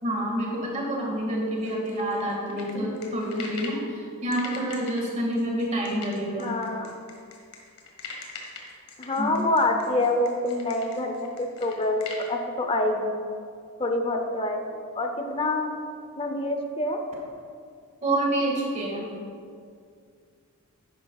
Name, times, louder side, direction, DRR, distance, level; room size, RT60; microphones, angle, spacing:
voice 1, 0.0-6.6 9.2-9.5 18.0-19.1, right 1 dB, 35° right, -2 dB, 1.9 m, -28 dB
sound 1, 1.6-3.8 4.3-12.3, left 5 dB, 85° left, 1.6 m, -42 dB
voice 2, 6.4-7.0 9.0-13.2 13.8-15.7 16.2-17.0, left 2 dB, 25° left, 4 dB, 0.7 m, -26 dB
10.5 x 10.0 x 2.4 m, 2.2 s
head